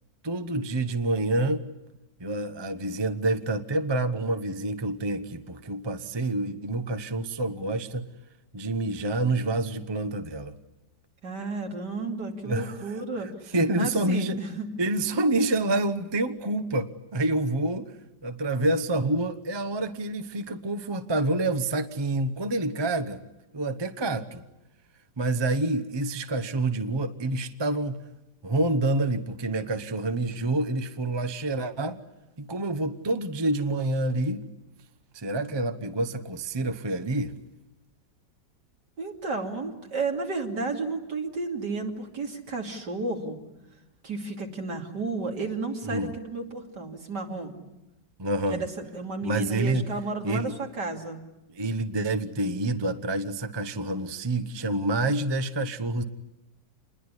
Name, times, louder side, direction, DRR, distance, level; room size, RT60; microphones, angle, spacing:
voice 1, 0.2-1.6 2.2-8.0 8.5-10.5 12.4-12.9 13.5-14.4 14.8-17.9 18.2-23.2 23.5-24.4 25.2-28.0 28.4-32.0 32.4-34.4 35.1-37.3 45.9-46.1 48.2-48.6 49.2-49.9 50.2-50.6 51.5-56.0, right 2 dB, 20° right, 9 dB, 0.7 m, -27 dB
voice 2, 11.2-13.3 13.8-14.7 39.0-43.4 44.0-47.5 48.5-51.2, right 3 dB, 65° right, 2 dB, 3.3 m, -32 dB
27.5 x 21.5 x 9.8 m, 0.96 s
omnidirectional pair, 2.0 m